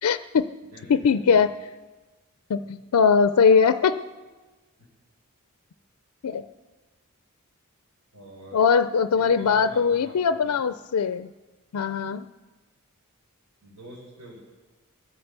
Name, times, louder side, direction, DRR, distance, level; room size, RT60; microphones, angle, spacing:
voice 1, 0.0-0.5 0.9-1.5 2.5-4.0 6.2-6.5 8.5-11.3 11.7-12.3, left 6 dB, 80° left, 12 dB, 0.4 m, -21 dB
voice 2, 0.7-1.5 2.6-2.7 8.1-8.6 9.1-10.6 13.6-14.4, right 1 dB, 85° right, -6 dB, 4.2 m, -45 dB
21.5 x 7.9 x 6.8 m, 1.3 s
head